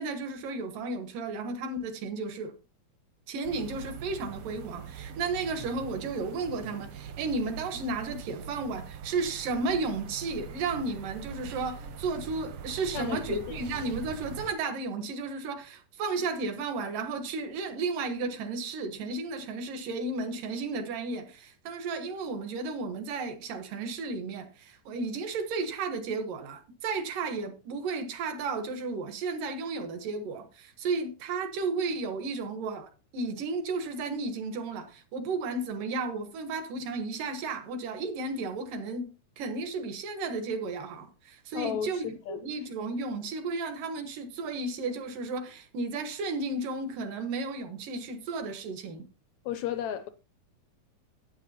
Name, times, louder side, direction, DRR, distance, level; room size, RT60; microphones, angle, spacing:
voice 1, 0.0-2.5 3.3-49.1, right 3 dB, 90° right, 3.1 m, -33 dB
sound 1, 3.4-14.5, right 6 dB, 75° right, 1.4 m, -43 dB
voice 2, 12.9-13.6 41.5-42.4 49.4-50.1, left 9 dB, 75° left, 1.7 m, -34 dB
12.0 x 9.3 x 2.9 m
omnidirectional pair, 3.7 m